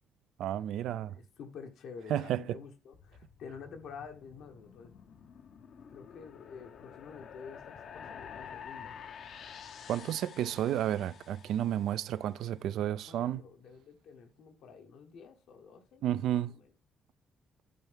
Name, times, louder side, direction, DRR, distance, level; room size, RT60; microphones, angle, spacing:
voice 1, 0.4-1.2 2.1-2.6 9.9-13.4 16.0-16.5, right 11 dB, 80° right, 0.3 m, -32 dB
voice 2, 1.1-5.2 5.9-8.9 12.3-16.0 16.3-16.6, left 6 dB, 80° left, 1.3 m, -49 dB
sound 1, 2.9-12.3, left 7 dB, 65° left, 0.7 m, -49 dB
11.0 x 4.6 x 3.5 m
cardioid pair, 90°, 0 cm